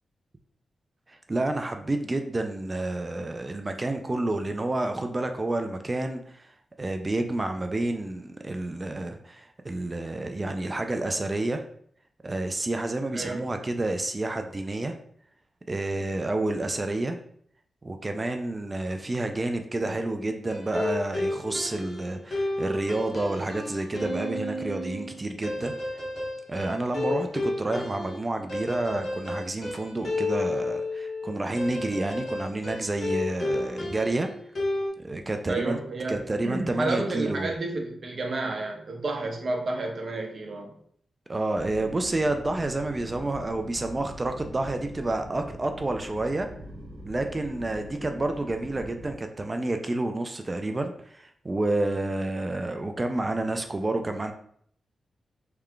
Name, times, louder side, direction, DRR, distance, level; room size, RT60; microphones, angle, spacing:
voice 1, 1.1-6.5 6.8-11.6 12.2-14.9 15.7-17.2 17.8-25.8 26.5-34.3 35.0-35.8 36.1-37.5 41.3-46.5 47.0-54.3, right 2 dB, 25° right, 6 dB, 0.3 m, -29 dB
sound 1, 20.5-34.9, left 2 dB, 50° left, 1.1 m, -32 dB
voice 2, 35.5-36.2 36.4-40.7, right 2 dB, 55° right, 1 dB, 0.8 m, -30 dB
sound 2, 41.5-49.1, equal, 80° right, 0.9 m, -43 dB
3.3 x 2.3 x 3.6 m, 0.62 s
cardioid pair, 90°, 0 cm